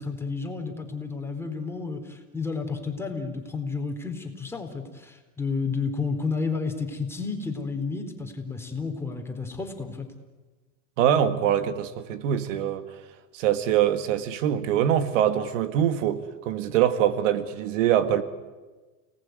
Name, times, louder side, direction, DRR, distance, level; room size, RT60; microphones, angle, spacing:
voice 1, 0.0-10.1, left 4 dB, 5° left, 4.1 m, -31 dB
voice 2, 11.0-12.9 13.3-18.2, right 10 dB, 80° right, 2.0 m, -23 dB
30.0 x 19.5 x 9.5 m
supercardioid pair, 130°, 37 cm